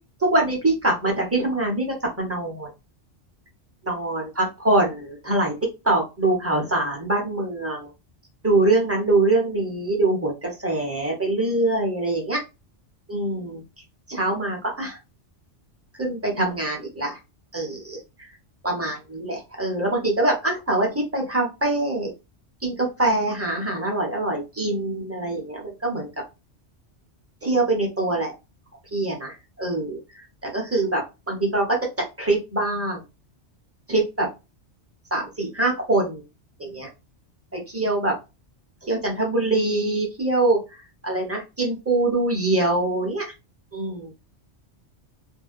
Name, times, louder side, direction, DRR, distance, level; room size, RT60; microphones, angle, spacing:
voice 1, 0.2-2.7 3.8-5.5 5.8-7.9 8.4-12.4 13.1-13.6 14.1-15.0 16.0-17.2 17.5-18.3 18.6-22.1 22.6-26.1 27.4-28.3 28.9-30.0 30.4-31.0 31.3-31.7 32.2-33.0 33.9-34.3 35.1-36.2 36.6-36.9 37.5-38.1 38.8-40.6 41.0-43.3 43.7-44.1, right 2 dB, 15° right, -1 dB, 0.7 m, -24 dB
2.6 x 2.1 x 2.4 m, 0.26 s
omnidirectional pair, 1.2 m